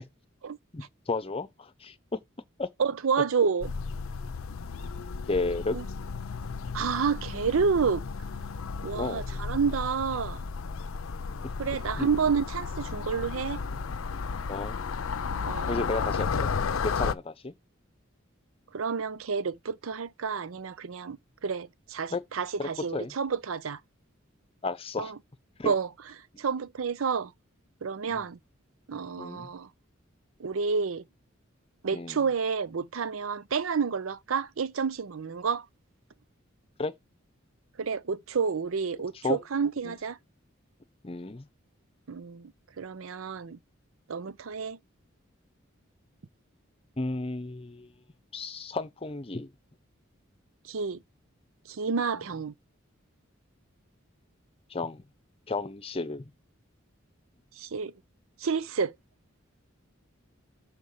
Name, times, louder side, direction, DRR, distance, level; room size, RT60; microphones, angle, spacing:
voice 1, 0.7-2.2 2.6-2.7 5.3-5.8 8.9-9.2 11.4-11.5 12.0-12.1 14.5-14.8 15.7-16.5 16.8-17.5 22.1-22.2 22.6-23.1 24.6-25.1 25.6-25.7 28.1-28.3 29.2-29.5 31.9-32.2 36.8-36.9 39.2-39.4 39.8-40.0 41.0-41.5 47.0-47.9 48.3-49.5 54.7-55.0 55.5-56.3, left 3 dB, 30° left, 0.7 m, -32 dB
voice 2, 2.8-3.7 5.7-5.8 6.7-8.0 8.8-10.4 11.6-13.6 15.5-15.8 18.7-23.8 25.0-25.1 25.6-25.9 26.4-27.3 27.8-28.4 28.9-29.7 30.4-31.0 31.8-35.7 37.8-40.2 42.1-42.5 42.8-43.6 44.1-44.8 50.6-51.0 51.7-52.5 57.6-57.9 58.4-58.9, right 5 dB, 85° right, 0.6 m, -29 dB
sound 1, 3.6-17.1, left 5 dB, 85° left, 0.5 m, -33 dB
6.4 x 4.5 x 5.5 m
head